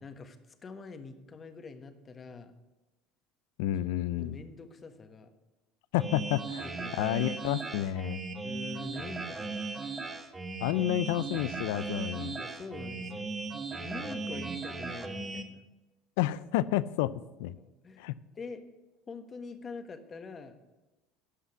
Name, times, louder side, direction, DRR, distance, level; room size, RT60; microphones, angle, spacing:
voice 1, 0.0-2.5 4.2-5.3 6.6-7.2 8.4-9.6 12.4-13.3 13.8-15.6 17.6-18.6 19.1-20.6, left 4 dB, 30° left, 8 dB, 1.3 m, -45 dB
voice 2, 3.6-4.4 5.9-6.6 7.0-8.2 10.6-12.4 16.2-17.1 17.4-17.5 18.0-18.1, left 14 dB, 80° left, 17 dB, 0.5 m, -30 dB
sound 1, 6.0-15.4, right 4 dB, 20° right, 1.5 m, -37 dB
13.0 x 5.8 x 7.9 m, 1.1 s
supercardioid pair, 85°, 0 cm